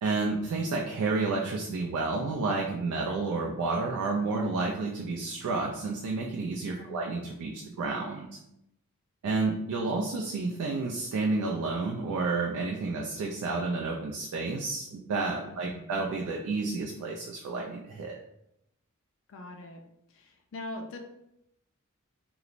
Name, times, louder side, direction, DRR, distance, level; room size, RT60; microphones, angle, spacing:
voice 1, 0.0-8.3 9.2-18.2, right 3 dB, 80° right, 0 dB, 0.3 m, -30 dB
voice 2, 6.7-7.1 15.5-15.9 19.3-19.8 20.1-21.0, left 1 dB, 60° left, 3 dB, 0.4 m, -42 dB
3.0 x 2.0 x 2.5 m, 0.80 s
head